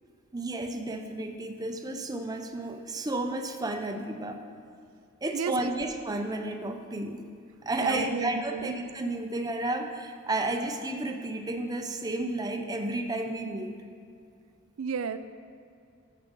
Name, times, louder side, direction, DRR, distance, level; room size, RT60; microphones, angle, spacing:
voice 1, 0.3-4.4 5.2-7.2 7.6-13.8, right 2 dB, 20° right, 4 dB, 0.6 m, -32 dB
voice 2, 5.3-5.7 7.8-8.7 14.8-15.2, right 6 dB, 85° right, 11 dB, 0.4 m, -33 dB
14.0 x 7.5 x 3.8 m, 2.4 s
head